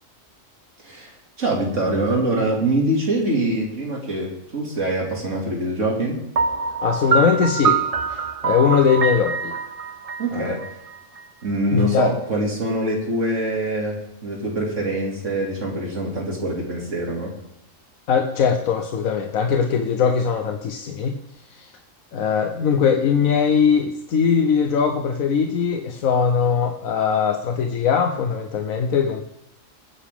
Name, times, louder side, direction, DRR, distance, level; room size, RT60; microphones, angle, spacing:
voice 1, 1.4-6.2 10.2-10.6 11.4-17.3, right 1 dB, 65° right, -1 dB, 2.9 m, -24 dB
Piano, 6.4-11.2, right 5 dB, 35° right, 0.6 m, -24 dB
voice 2, 6.8-7.8 8.1-9.6 10.3-10.6 11.7-12.1 18.1-21.1 21.5-21.7 22.1-29.2, left 6 dB, 90° left, 4 dB, 1.4 m, -20 dB
20.5 x 9.9 x 3.6 m, 0.85 s
omnidirectional pair, 1.4 m